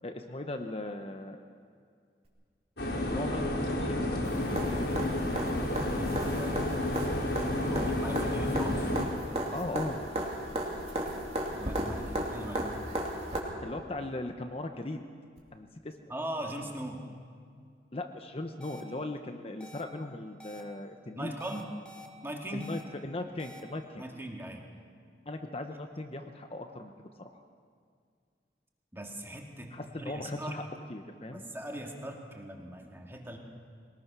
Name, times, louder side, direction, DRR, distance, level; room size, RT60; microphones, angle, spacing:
voice 1, 0.0-1.4 3.1-4.9 9.5-10.0 13.3-15.0 15.5-15.9 17.9-21.3 22.5-24.0 25.3-27.4 29.7-30.6 30.9-31.4, left 2 dB, 35° left, 5 dB, 0.9 m, -38 dB
sound 1, 2.8-9.0, left 1 dB, 80° left, 4.3 m, -31 dB
sound 2, 4.2-13.4 15.4-15.5, right 1 dB, 35° right, 2.9 m, -35 dB
voice 2, 5.9-6.6 7.3-8.9 11.5-12.7 16.1-17.0 21.1-21.7 22.2-22.7 24.0-24.6 28.9-30.6 31.3-33.4, right 1 dB, 15° right, 1 dB, 2.0 m, -40 dB
sound 3, 18.6-18.8 19.6-19.8 20.4-20.6 21.4-22.1 22.6-22.8 23.4-23.6, left 1 dB, 5° left, 1.2 m, -49 dB
22.0 x 19.5 x 6.1 m, 2.2 s
head